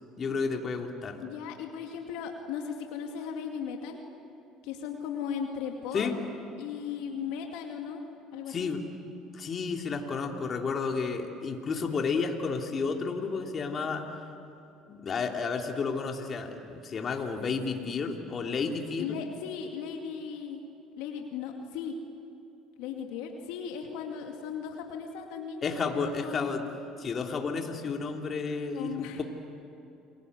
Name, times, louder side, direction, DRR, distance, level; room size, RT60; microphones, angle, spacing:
voice 1, 0.2-1.2 5.9-6.2 8.5-8.9 9.3-14.0 14.9-19.2 25.6-26.7 27.0-29.2, left 5 dB, 40° left, 3 dB, 3.1 m, -31 dB
voice 2, 1.2-4.0 4.6-6.1 6.6-8.0 8.3-8.7 19.0-20.6 21.0-21.9 22.8-26.7 28.7-29.2, left 7 dB, 75° left, 3 dB, 2.3 m, -37 dB
30.0 x 23.0 x 8.2 m, 2.8 s
hypercardioid pair, 70°, 0 cm